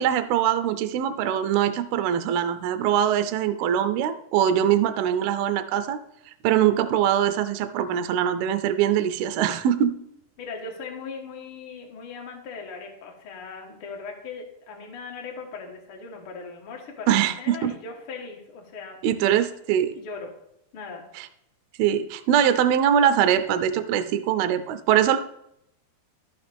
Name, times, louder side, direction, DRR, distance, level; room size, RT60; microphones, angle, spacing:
voice 1, 0.0-6.0 6.4-9.9 17.1-17.7 19.0-19.9 21.2-21.3 21.8-25.2, right 10 dB, 80° right, 11 dB, 2.3 m, -22 dB
voice 2, 10.4-19.4 19.9-20.3 20.7-21.0, left 4 dB, 55° left, 1 dB, 1.5 m, -39 dB
13.5 x 5.9 x 3.5 m, 0.77 s
omnidirectional pair, 4.8 m